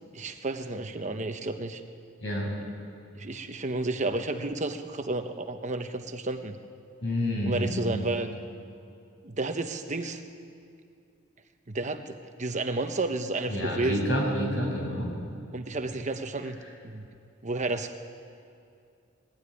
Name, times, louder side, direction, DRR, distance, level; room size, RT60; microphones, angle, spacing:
voice 1, 0.1-1.8 3.2-6.6 7.4-8.3 9.2-10.2 11.7-14.1 15.5-16.6 16.8-17.0 17.4-18.0, right 2 dB, 35° right, 6 dB, 1.0 m, -31 dB
voice 2, 7.0-8.0 13.5-15.1, equal, 60° left, -1 dB, 6.2 m, -28 dB
20.5 x 15.5 x 9.9 m, 2.5 s
head